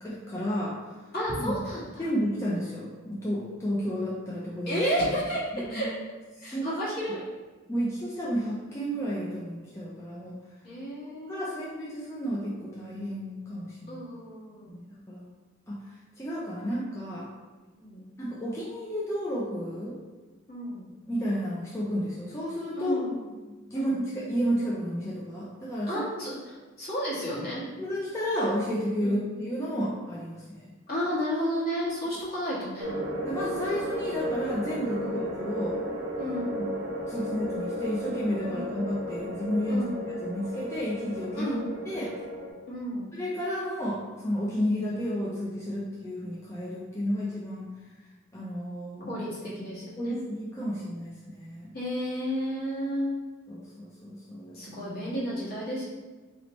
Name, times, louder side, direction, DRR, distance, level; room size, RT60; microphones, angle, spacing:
voice 1, 0.0-0.8 1.4-1.5 2.0-4.8 5.5-5.9 6.4-6.7 7.7-10.4 11.3-14.0 14.7-15.3 15.7-15.8 16.2-17.3 18.2-20.0 21.1-23.0 23.7-26.0 27.8-30.7 33.3-35.8 37.1-39.8 40.2-41.5 41.9-42.1 43.1-47.7 48.3-49.1 50.0-51.7 53.5-54.8, equal, 15° left, -7 dB, 0.5 m, -32 dB
voice 2, 1.1-2.0 4.7-5.9 6.4-7.3 10.6-11.9 13.9-14.8 17.7-18.0 20.5-20.9 22.8-23.3 23.7-24.0 25.9-27.6 29.0-29.2 30.9-32.9 34.9-35.2 36.2-36.7 38.5-38.7 39.7-40.0 41.3-41.6 42.7-43.1 49.1-50.2 51.7-53.1 54.5-55.8, equal, 50° left, -8 dB, 1.4 m, -32 dB
sound 1, 32.8-42.5, equal, 70° right, 0.8 m, -34 dB
4.0 x 3.2 x 3.0 m, 1.3 s
head